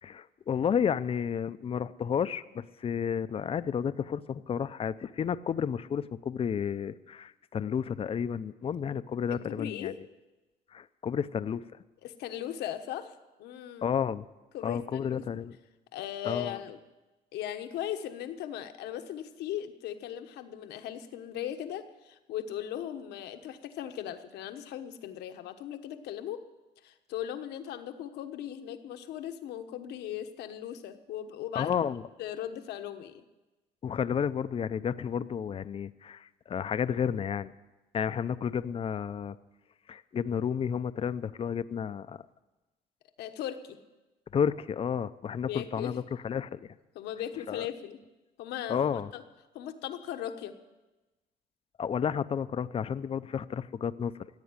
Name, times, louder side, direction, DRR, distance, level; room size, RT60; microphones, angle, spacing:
voice 1, 0.0-9.9 10.7-11.6 13.8-14.3 14.6-15.5 16.2-16.6 31.5-32.0 33.8-37.5 37.9-39.4 39.9-42.2 44.3-46.7 47.5-47.7 48.7-49.1 51.8-54.1, left 7 dB, 35° left, 14 dB, 0.6 m, -31 dB
voice 2, 9.5-10.0 12.0-13.9 14.5-15.2 15.9-16.8 17.3-26.4 26.8-31.7 32.2-33.2 43.2-43.8 45.5-46.0 46.9-48.0 48.4-49.2 49.5-50.5, left 10 dB, 80° left, 7 dB, 1.2 m, -38 dB
15.5 x 8.4 x 9.7 m, 1.1 s
cardioid pair, 110°, 17 cm